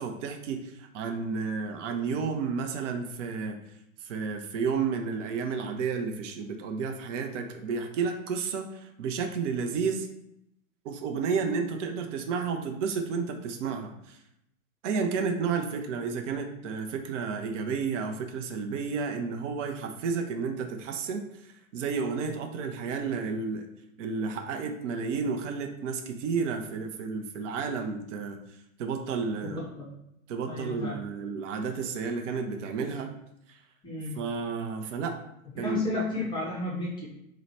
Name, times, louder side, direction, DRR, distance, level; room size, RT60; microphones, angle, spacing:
voice 1, 0.0-3.6 4.0-10.1 10.8-14.2 14.8-23.7 24.0-28.4 28.8-29.6 30.3-33.1 33.5-33.6 34.2-35.2 35.6-36.0, right 5 dB, 60° right, 4 dB, 0.6 m, -31 dB
voice 2, 29.4-30.0 30.5-31.0 33.8-34.2 35.5-37.1, left 2 dB, 10° left, -7 dB, 0.4 m, -32 dB
2.9 x 2.1 x 4.0 m, 0.80 s
hypercardioid pair, 105°, 41 cm